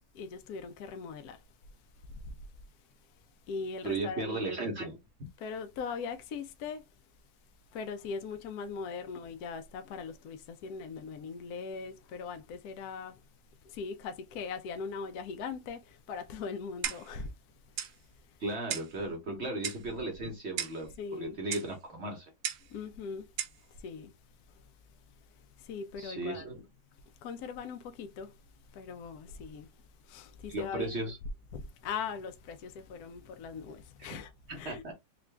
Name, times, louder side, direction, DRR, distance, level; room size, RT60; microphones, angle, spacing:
voice 1, 0.1-1.4 2.2-2.3 3.5-4.3 5.4-6.8 7.7-13.2 13.6-17.3 19.3-19.5 21.0-21.4 22.7-23.3 23.8-24.1 25.6-26.5 27.2-28.3 28.7-29.7 30.1-31.1 31.5-34.3 34.6-34.8, left 5 dB, 70° left, 0.9 m, -40 dB
voice 2, 3.8-5.0 18.4-22.3 26.0-26.6 30.5-31.2 34.0-34.2 34.5-34.9, right 2 dB, 50° right, 0.8 m, -36 dB
Clock, 16.8-17.2 17.8-18.0 18.7-19.0 19.6-19.9 20.6-20.8 21.5-21.7 22.4-22.7 23.4-23.6, right 9 dB, 70° right, 1.1 m, -36 dB
3.8 x 2.3 x 3.2 m
omnidirectional pair, 2.0 m